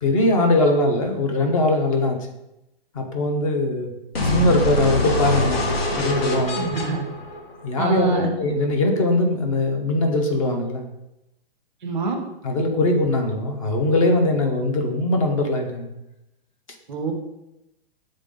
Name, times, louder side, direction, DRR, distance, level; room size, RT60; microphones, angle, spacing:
voice 1, 0.0-2.2 2.9-3.9 4.2-5.7 5.9-6.8 7.6-10.9 12.4-15.9, left 2 dB, 35° left, 4 dB, 0.9 m, -21 dB
sound 1, 4.1-8.1, left 1 dB, 80° left, 1.4 m, -24 dB
voice 2, 6.6-7.0 7.8-8.3 11.8-12.2 16.9-17.1, right 3 dB, ahead, 0 dB, 0.4 m, -26 dB
6.8 x 3.7 x 3.9 m, 0.89 s
hypercardioid pair, 175°, 31 cm